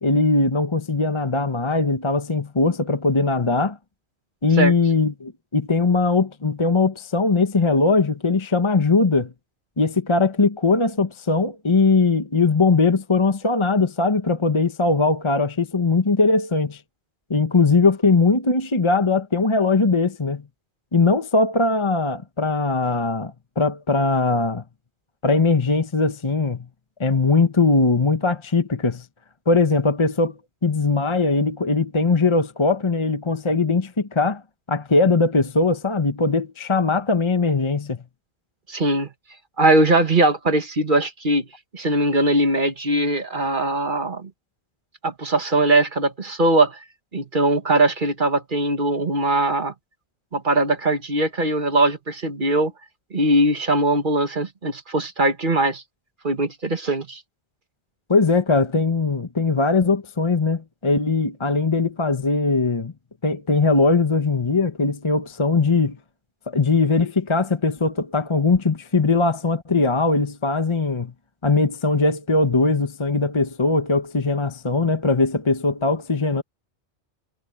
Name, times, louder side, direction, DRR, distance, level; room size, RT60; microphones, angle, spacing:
voice 1, 0.0-3.8 4.4-9.3 9.8-16.8 17.3-20.4 20.9-24.6 25.2-26.7 27.0-29.1 29.5-34.4 34.7-38.0 58.1-62.9 63.2-66.0 66.5-71.1 71.4-76.4, left 3 dB, 25° left, 1.1 m, -20 dB
voice 2, 38.7-39.1 39.6-41.5 41.7-44.3 45.0-46.8 47.1-49.7 50.3-52.7 53.1-55.8 56.2-57.2, right 2 dB, 45° right, 1.8 m, -20 dB
omnidirectional pair, 1.2 m